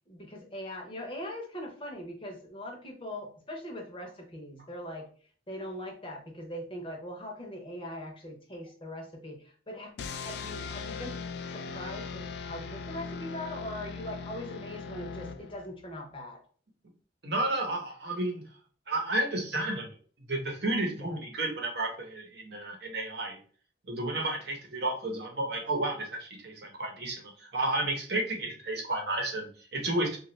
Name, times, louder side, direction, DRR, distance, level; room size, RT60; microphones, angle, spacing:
voice 1, 0.1-5.1 5.5-9.9 10.2-11.2 11.5-16.4 21.0-21.2, left 1 dB, 30° left, 0 dB, 0.7 m, -41 dB
sound 1, 10.0-15.8, left 5 dB, 65° left, 0.3 m, -39 dB
voice 2, 17.2-18.4 18.9-19.9 20.2-23.4 23.8-30.2, right 2 dB, 65° right, 2 dB, 0.8 m, -32 dB
2.9 x 2.3 x 3.1 m, 0.44 s
head